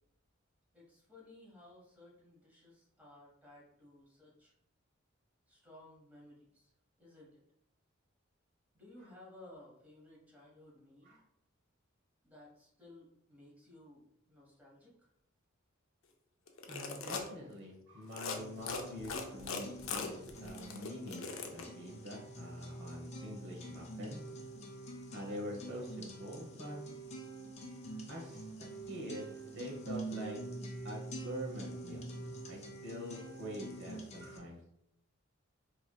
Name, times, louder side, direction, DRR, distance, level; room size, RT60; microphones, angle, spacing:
voice 1, 0.7-4.5 5.5-6.7 7.0-7.4 8.7-11.2 12.2-15.1, left 1 dB, 10° right, -5 dB, 1.4 m, -58 dB
sound 1, 16.5-17.3 18.0-18.4 18.7-21.6, left 5 dB, 90° left, 0.6 m, -40 dB
voice 2, 16.7-24.2 25.1-26.8 28.1-28.5 28.9-30.4 30.8-34.6, equal, 60° right, -1 dB, 1.2 m, -45 dB
sound 2, 18.4-34.4, right 1 dB, 35° left, 0.6 m, -46 dB
4.6 x 3.1 x 2.3 m, 0.76 s
head